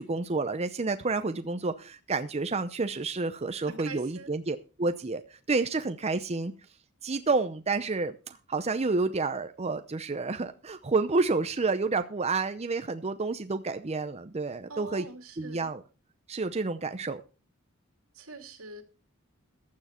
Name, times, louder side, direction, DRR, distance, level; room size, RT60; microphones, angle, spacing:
voice 1, 0.0-6.5 7.0-15.1 15.4-15.8 16.3-17.2, right 3 dB, 30° right, 0.6 m, -29 dB
voice 2, 3.6-4.3 14.7-15.7 18.1-18.8, right 3 dB, 85° right, 2.5 m, -44 dB
15.0 x 9.6 x 4.3 m
head